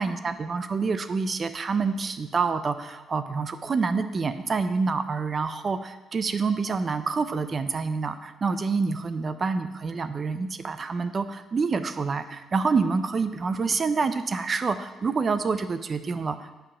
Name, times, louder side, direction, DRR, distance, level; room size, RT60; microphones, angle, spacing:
voice 1, 0.0-16.5, right 4 dB, 40° right, 11 dB, 0.6 m, -27 dB
8.6 x 5.4 x 5.6 m, 1.2 s
cardioid pair, 90°, 0 cm